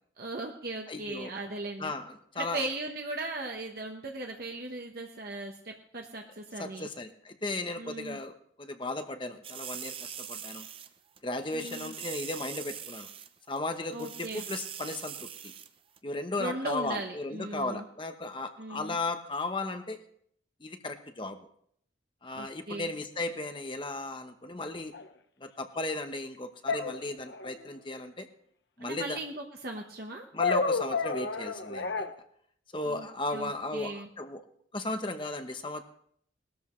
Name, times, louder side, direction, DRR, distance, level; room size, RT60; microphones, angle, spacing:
voice 1, 0.2-1.9 2.4-6.9 7.8-8.2 11.5-11.9 13.9-14.4 16.4-17.8 18.6-19.0 22.3-22.9 28.8-30.3 32.8-33.1 33.3-34.1, right 2 dB, 50° right, 2 dB, 1.1 m, -38 dB
voice 2, 0.9-1.3 1.8-2.6 6.6-8.3 8.6-10.7 11.2-13.1 13.5-15.5 16.0-20.0 20.6-21.4 22.2-24.9 25.4-28.3 28.8-29.2 30.3-32.1 32.7-34.4 34.7-35.8, left 2 dB, 25° left, 7 dB, 1.0 m, -35 dB
sound 1, 9.4-10.9 11.2-11.3 11.5-13.3 13.6-13.7 13.9-15.7 16.0-16.1, right 9 dB, 30° right, 0.6 m, -42 dB
sound 2, 24.9-25.0 26.7-27.6 30.4-32.1, left 4 dB, 65° left, 1.0 m, -30 dB
19.5 x 13.0 x 3.2 m, 0.66 s
head